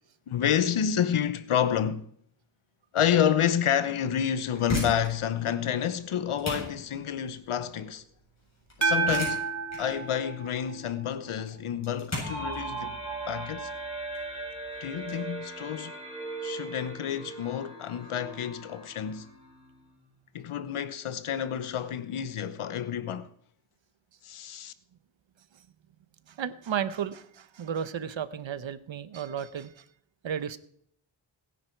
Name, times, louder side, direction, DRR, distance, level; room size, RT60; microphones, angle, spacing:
voice 1, 0.3-2.0 2.9-8.0 8.8-9.4 9.8-13.0 13.3-13.7 14.8-15.9 16.4-19.3 20.3-23.3 24.2-24.7, left 9 dB, 80° left, 1.0 m, -29 dB
sound 1, 4.5-15.1, left 1 dB, 30° left, 8.0 m, -39 dB
sound 2, 8.8-11.2, right 4 dB, 35° right, 2.3 m, -30 dB
sound 3, 12.2-19.8, right 3 dB, 15° right, 7.0 m, -39 dB
voice 2, 26.3-29.8 30.2-30.6, right 8 dB, 65° right, 1.0 m, -33 dB
21.5 x 10.5 x 4.6 m
wide cardioid pair, 110°, 50 cm